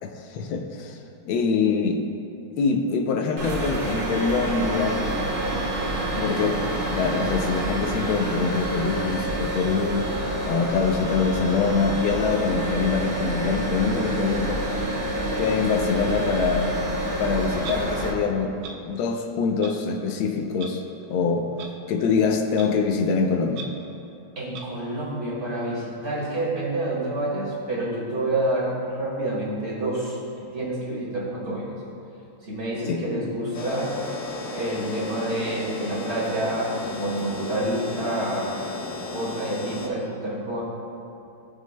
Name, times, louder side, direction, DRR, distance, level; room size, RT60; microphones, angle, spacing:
voice 1, 0.0-1.0 1.2-2.0 2.6-5.1 5.7-5.8 6.2-6.6 6.9-14.6 15.4-16.9 17.2-18.5 18.8-20.8 21.1-21.5 21.9-23.7 32.9-33.0, left 5 dB, 85° left, 3 dB, 1.6 m, -24 dB
sound 1, 3.4-18.1, right 1 dB, 50° right, 1.7 m, -28 dB
Clock, 17.6-17.8 18.6-18.7 19.6-19.7 20.6-20.7 21.6-21.7 22.6-22.7 23.5-23.6 24.5-24.6, right 5 dB, 90° right, 1.6 m, -37 dB
voice 2, 24.4-30.2 30.5-31.8 32.4-33.9 34.5-40.6, right 1 dB, 35° right, -5 dB, 2.1 m, -28 dB
sound 2, 33.5-39.9, left 2 dB, 65° left, 2.3 m, -34 dB
17.5 x 6.1 x 2.2 m, 2.7 s
omnidirectional pair, 2.2 m